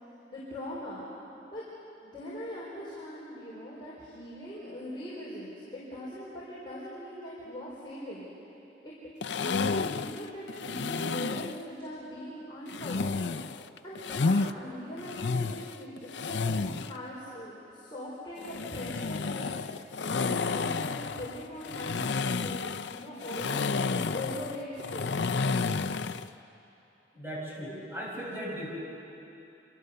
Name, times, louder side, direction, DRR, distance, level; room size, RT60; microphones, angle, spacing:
voice 1, 0.3-1.1 1.5-1.6 2.0-8.3 8.8-8.9 9.4-13.2 13.8-19.5 20.1-25.3, equal, 25° left, -7 dB, 5.0 m, -41 dB
sound 1, 9.2-11.6 12.7-14.5 15.0-17.0 18.4-26.3, left 4 dB, 90° left, 0.6 m, -31 dB
voice 2, 27.1-28.7, equal, 15° right, -4 dB, 7.3 m, -37 dB
27.5 x 27.0 x 6.8 m, 2.9 s
head